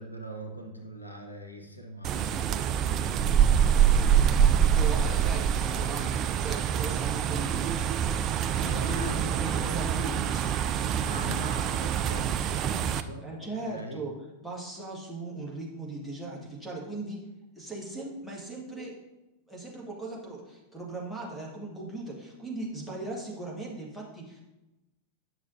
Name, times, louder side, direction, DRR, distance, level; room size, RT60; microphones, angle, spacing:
voice 1, 0.0-3.2 8.9-9.3 11.1-14.0, right 1 dB, 85° left, 2 dB, 0.8 m, -41 dB
sound 1, 2.0-13.0, right 8 dB, 35° right, 0.4 m, -25 dB
voice 2, 3.6-7.8 8.5-11.2 13.2-14.1 14.4-17.2 17.6-18.9 19.5-24.4, right 2 dB, ahead, -5 dB, 1.8 m, -38 dB
8.9 x 6.1 x 2.7 m, 0.99 s
figure-of-eight pair, 90°, 0 cm